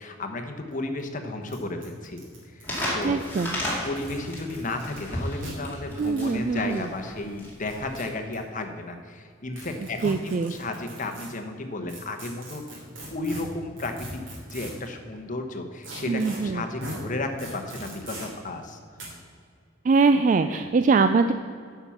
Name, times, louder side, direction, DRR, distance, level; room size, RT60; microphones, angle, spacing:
voice 1, 0.0-2.2 2.5-3.4 3.8-12.6 13.1-18.8 20.4-20.7, left 2 dB, 40° left, 6 dB, 1.0 m, -33 dB
sound 1, 0.7-0.8 1.0-1.1 1.5-1.6 1.8-3.3 3.9-5.0 5.4-5.5 6.0-6.3 7.4-8.4 9.5-11.3 11.9-14.9 15.8-16.4 16.8-17.0 17.4-18.3 19.0-19.1, right 1 dB, 70° right, 3.1 m, -40 dB
sound 2, 2.6-8.1, left 1 dB, 10° left, 2.5 m, -33 dB
voice 2, 3.0-3.6 6.0-6.9 10.0-10.5 16.1-16.6 19.8-21.3, right 4 dB, 40° right, 9 dB, 0.3 m, -22 dB
9.6 x 5.8 x 7.1 m, 2.1 s
head